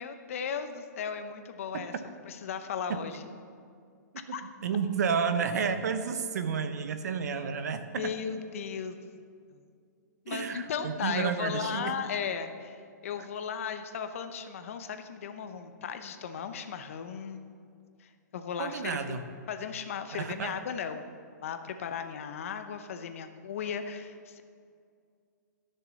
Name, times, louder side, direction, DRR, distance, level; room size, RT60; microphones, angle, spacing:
voice 1, 0.0-1.9 2.2-3.3 4.3-4.4 7.9-9.1 9.5-9.6 10.2-12.8 13.0-17.6 18.0-19.2 19.5-24.4, left 7 dB, 45° left, 8 dB, 0.8 m, -36 dB
voice 2, 4.3-8.1 10.3-12.0 18.6-19.2 20.1-20.5, right 6 dB, 60° right, 9 dB, 0.9 m, -31 dB
13.0 x 6.7 x 6.3 m, 2.3 s
hypercardioid pair, 175°, 10 cm